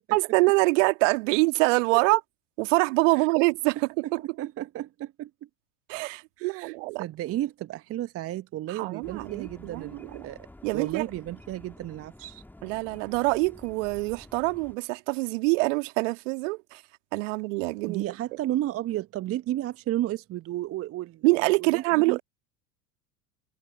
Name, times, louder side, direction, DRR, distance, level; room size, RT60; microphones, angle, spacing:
voice 1, 0.1-2.2 2.6-3.8 4.1-4.2 5.9-7.0 8.8-10.2 10.6-11.0 12.6-16.8 17.1-18.1 21.2-22.2, right 26 dB, 55° right, 2.0 m, -25 dB
voice 2, 3.8-5.5 6.4-12.4 17.9-21.2 21.6-22.2, right 14 dB, 30° right, 1.1 m, -33 dB
sound 1, 9.0-14.8, left 1 dB, 5° left, 2.8 m, -50 dB
figure-of-eight pair, 80°, 45 cm